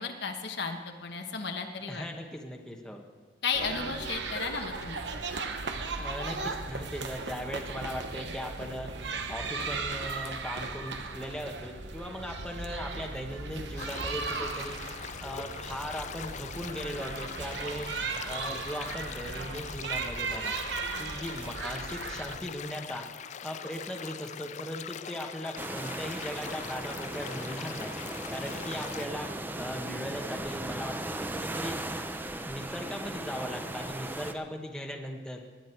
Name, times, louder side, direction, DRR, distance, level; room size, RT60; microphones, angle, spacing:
voice 1, 0.0-2.1 3.4-5.0, left 5 dB, 65° left, 4 dB, 1.2 m, -34 dB
voice 2, 1.9-3.0 5.9-14.8 15.2-17.9 18.2-20.6 21.0-23.1 23.4-29.3 29.6-31.8 32.4-35.4, equal, 5° left, 1 dB, 1.2 m, -38 dB
sound 1, 3.5-22.4, right 4 dB, 70° right, 1.1 m, -37 dB
sound 2, 13.8-29.0, left 8 dB, 40° left, 0.3 m, -42 dB
sound 3, 25.6-34.3, right 1 dB, 10° right, 0.6 m, -37 dB
19.0 x 10.5 x 4.6 m, 1.5 s
head